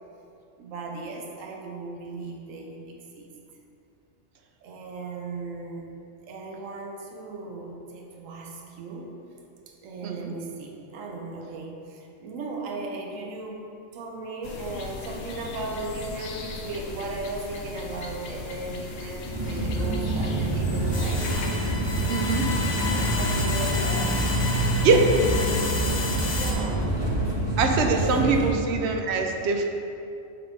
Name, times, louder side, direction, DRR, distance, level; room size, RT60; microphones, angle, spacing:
voice 1, 0.6-3.3 4.6-5.9 6.2-9.2 9.7-13.7 13.9-21.3 22.9-24.4 24.7-25.7 26.1-27.0 28.0-28.5, right 3 dB, 85° right, 0 dB, 1.1 m, -37 dB
sound 1, 14.4-21.5, left 4 dB, 90° left, 1.0 m, -38 dB
sound 2, 19.3-28.5, right 1 dB, 25° right, 0.6 m, -26 dB
sound 3, 20.9-26.5, left 3 dB, 45° left, 0.3 m, -31 dB
voice 2, 22.1-22.4 23.4-23.5 24.8-25.0 27.6-29.6, right 4 dB, 65° right, 4 dB, 0.8 m, -23 dB
6.8 x 3.6 x 4.1 m, 2.7 s
omnidirectional pair, 1.3 m